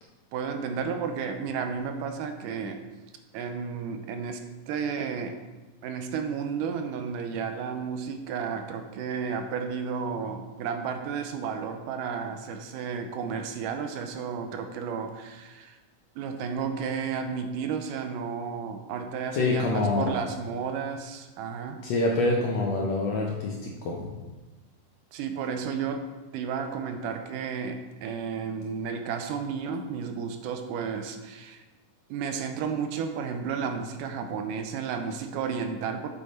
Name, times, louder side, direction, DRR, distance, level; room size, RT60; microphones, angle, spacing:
voice 1, 0.3-2.8 3.3-5.4 5.8-15.8 16.2-21.9 25.1-26.1 26.3-31.6 32.1-36.1, right 6 dB, 80° right, 6 dB, 2.1 m, -32 dB
voice 2, 19.3-20.2 21.8-24.1, left 2 dB, 75° left, -1 dB, 1.6 m, -26 dB
7.7 x 6.6 x 4.1 m, 1.2 s
omnidirectional pair, 3.9 m